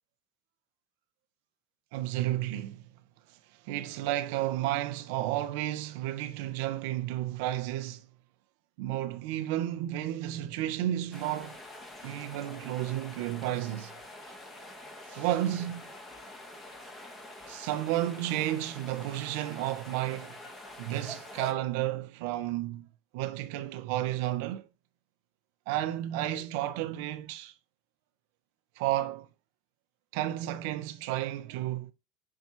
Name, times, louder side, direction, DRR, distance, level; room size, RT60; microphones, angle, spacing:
voice 1, 1.9-2.8 3.6-8.0 8.8-11.6 12.0-13.9 15.1-15.9 17.5-20.3 20.8-22.9 23.1-24.7 25.7-27.5 28.8-29.3 30.1-31.9, right 14 dB, 60° right, 0.5 m, -32 dB
sound 1, 11.1-21.5, left 1 dB, 15° left, 1.1 m, -46 dB
5.4 x 2.3 x 2.9 m
hypercardioid pair, 80°, 0 cm